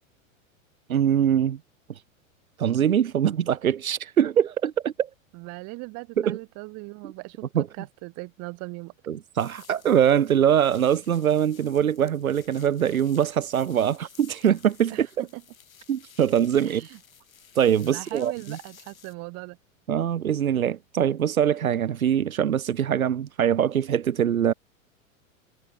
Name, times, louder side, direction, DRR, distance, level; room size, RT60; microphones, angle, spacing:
voice 1, 0.9-1.6 2.6-5.1 6.2-6.4 7.0-7.1 7.5-7.7 9.1-15.1 15.9-16.9 17.6-18.6 19.9-24.5, right 9 dB, 90° right, 0.7 m, -23 dB
voice 2, 5.3-8.9 14.9-15.4 16.6-17.0 17.8-19.6, right 27 dB, 40° right, 1.2 m, -39 dB
sound 1, 9.4-19.1, left 8 dB, 75° left, 6.1 m, -53 dB
hypercardioid pair, 100°, 41 cm